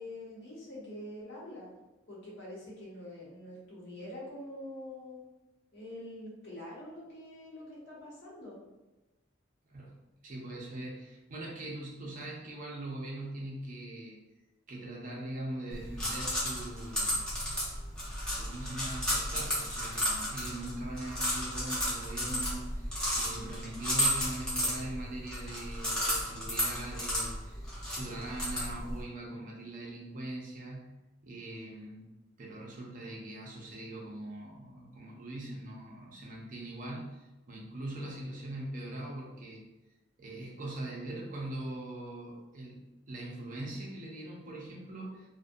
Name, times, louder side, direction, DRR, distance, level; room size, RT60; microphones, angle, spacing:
voice 1, 0.0-1.7 2.1-5.2 5.7-8.6, left 1 dB, 60° left, -6 dB, 1.0 m, -45 dB
voice 2, 9.7-14.2 14.7-17.2 18.3-31.0 31.2-32.1 32.4-39.6 40.2-42.8 43.1-45.3, right 1 dB, 40° right, -2 dB, 0.5 m, -41 dB
sound 1, 15.7-29.0, equal, 5° left, 0.6 m, -33 dB
2.5 x 2.1 x 2.5 m, 1.0 s
head